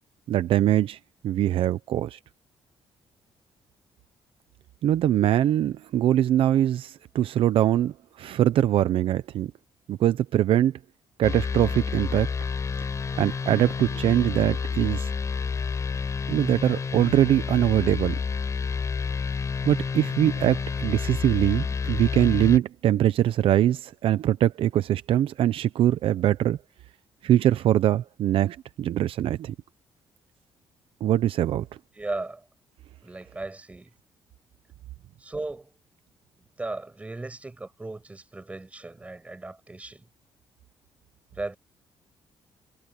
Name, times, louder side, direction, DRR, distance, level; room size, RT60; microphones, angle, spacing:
voice 1, 0.3-1.0 1.2-2.2 4.8-9.5 9.9-10.7 11.2-12.3 13.2-15.1 16.3-18.2 19.6-26.6 27.2-29.5 31.0-31.7, right 12 dB, 70° right, 0.7 m, -22 dB
sound 1, 11.2-22.6, left 5 dB, 30° left, 4.8 m, -29 dB
voice 2, 31.9-32.5 33.0-33.9 35.2-35.8 36.6-40.1 41.3-41.6, right 2 dB, 15° right, 7.3 m, -36 dB
cardioid pair, 150°, 10 cm